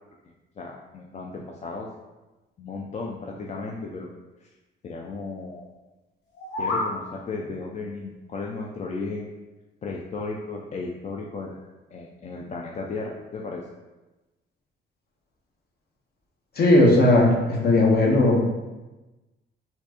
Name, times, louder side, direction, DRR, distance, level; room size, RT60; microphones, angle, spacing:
voice 1, 0.6-1.9 2.6-4.1 4.4-4.5 4.8-5.7 6.6-9.3 9.8-13.7, left 3 dB, 35° left, -1 dB, 0.4 m, -35 dB
sound 1, 6.2-6.9, left 2 dB, 85° left, 0.9 m, -28 dB
voice 2, 16.6-18.4, left 2 dB, 55° left, -1 dB, 0.9 m, -17 dB
4.2 x 2.5 x 2.9 m, 1.1 s
cardioid pair, 90°, 20 cm